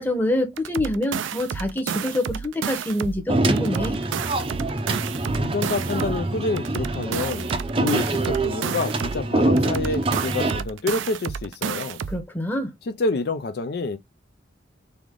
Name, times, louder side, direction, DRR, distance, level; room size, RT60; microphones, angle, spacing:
voice 1, 0.0-4.0 12.1-12.7, left 1 dB, 10° left, 0.9 m, -26 dB
sound 1, 0.6-3.2 3.6-6.2 6.6-9.2 9.6-12.2, right 7 dB, 85° right, 0.4 m, -31 dB
sound 2, 3.3-10.6, right 2 dB, 30° right, 0.5 m, -25 dB
voice 2, 5.4-7.5 7.8-12.0 12.8-14.0, left 3 dB, 55° left, 0.4 m, -27 dB
3.6 x 3.4 x 3.7 m
head